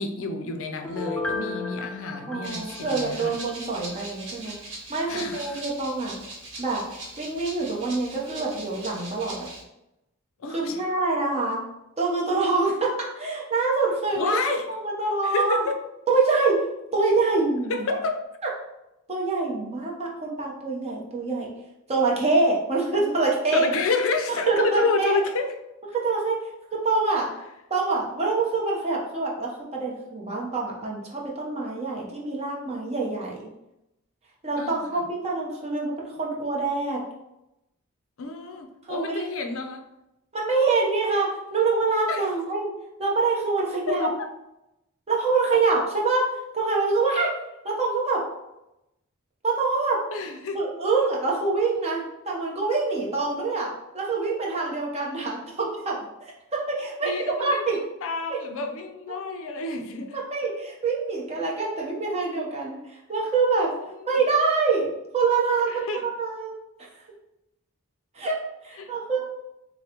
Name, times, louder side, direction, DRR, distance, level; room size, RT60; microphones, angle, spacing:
voice 1, 0.0-3.3 5.1-5.6 10.4-10.8 14.1-14.7 15.2-15.8 17.7-18.2 23.5-25.6 34.6-35.0 38.2-39.9 42.1-42.3 43.9-44.3 50.1-50.6 57.0-60.2 63.8-64.2 65.6-66.0 68.7-68.9, left 3 dB, 65° left, 5 dB, 0.5 m, -29 dB
Piano, 0.8-3.5 3.9-4.0, left 2 dB, 5° left, 0.4 m, -34 dB
voice 2, 2.3-4.6 4.9-6.2 6.6-6.8 7.2-9.5 10.5-11.6 12.0-14.4 14.7-15.6 16.1-16.6 16.9-17.9 19.1-21.5 21.9-23.7 24.3-25.2 25.9-26.4 26.7-27.3 27.7-33.4 34.4-37.0 38.9-39.2 40.3-42.7 43.0-44.1 45.1-46.2 46.5-47.3 47.6-48.2 49.4-50.0 50.5-56.0 56.5-57.1 57.4-57.8 58.3-58.4 60.1-63.7 64.0-66.5 68.1-68.4 68.6-69.3, right 3 dB, 30° right, -3 dB, 0.9 m, -25 dB
Rattle (instrument), 2.4-9.6, right 2 dB, 60° right, 1.3 m, -40 dB
6.5 x 2.2 x 2.9 m, 0.89 s
head